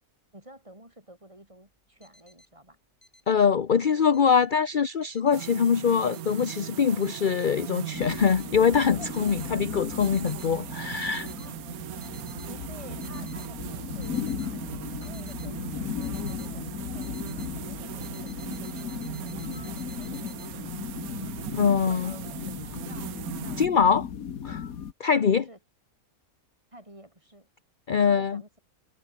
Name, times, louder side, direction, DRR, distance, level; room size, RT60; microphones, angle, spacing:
voice 1, 0.3-2.8 11.4-11.6 12.5-20.8 21.9-23.7 25.5-25.6 26.7-27.5 27.9-28.6, right 1 dB, 20° right, 5.3 m, -50 dB
sound 1, 1.8-2.5 3.0-3.5 3.8-4.5 5.0-5.5 6.0-6.5 7.0-7.5 8.0-8.5 9.0-9.5 10.0-10.5 11.0-11.5 11.9-12.5 13.0-13.5 14.0-14.5 15.0-15.5 16.0-16.5 17.0-17.5 18.0-20.5, left 1 dB, 20° left, 5.0 m, -55 dB
voice 2, 3.3-11.3 21.5-22.1 23.6-24.1 24.4-24.6 25.0-25.5 27.9-28.4, left 6 dB, 40° left, 0.9 m, -23 dB
sound 2, 5.3-23.7, right 13 dB, 80° right, 1.2 m, -39 dB
sound 3, 7.9-24.9, left 8 dB, 70° left, 1.7 m, -37 dB
omnidirectional pair, 1.5 m